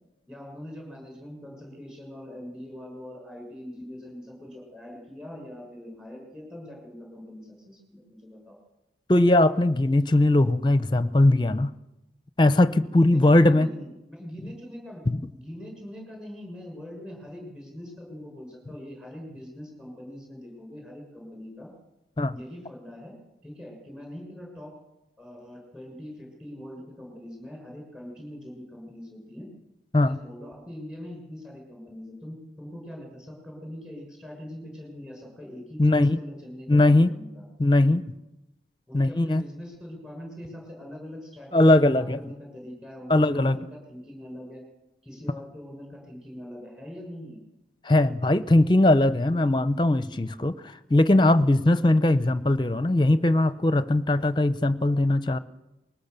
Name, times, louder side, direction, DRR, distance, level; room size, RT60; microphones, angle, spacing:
voice 1, 0.3-8.6 12.9-15.0 15.4-21.7 22.3-23.1 23.4-24.7 25.2-29.5 30.0-37.4 38.9-44.6 45.0-47.4, left 1 dB, 5° right, 1 dB, 6.5 m, -42 dB
voice 2, 9.1-11.7 12.4-13.7 15.1-15.2 22.2-22.3 29.9-30.2 35.8-36.2 36.7-37.1 37.6-38.0 38.9-39.4 41.5-42.2 43.1-43.6 47.8-55.4, left 1 dB, 25° left, 13 dB, 0.8 m, -20 dB
21.0 x 19.0 x 6.9 m, 0.97 s
head